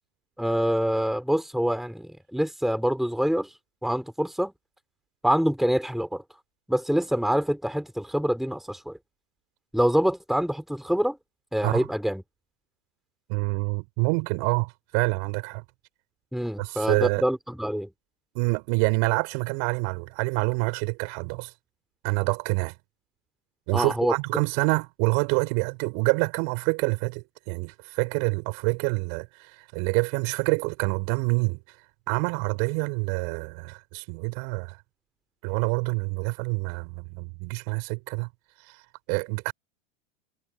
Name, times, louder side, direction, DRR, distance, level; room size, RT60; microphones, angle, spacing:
voice 1, 0.4-3.5 3.8-4.5 5.2-6.2 6.7-9.0 9.7-11.2 11.5-12.2 16.3-17.9 23.7-24.1, equal, ahead, 4.3 m, -25 dB
voice 2, 13.3-15.6 16.6-17.2 18.3-21.5 22.0-22.7 23.7-31.6 32.1-34.8 35.4-38.3 38.7-38.8 39.1-39.5, right 36 dB, 55° right, 5.5 m, -27 dB
hypercardioid pair, 105°, 37 cm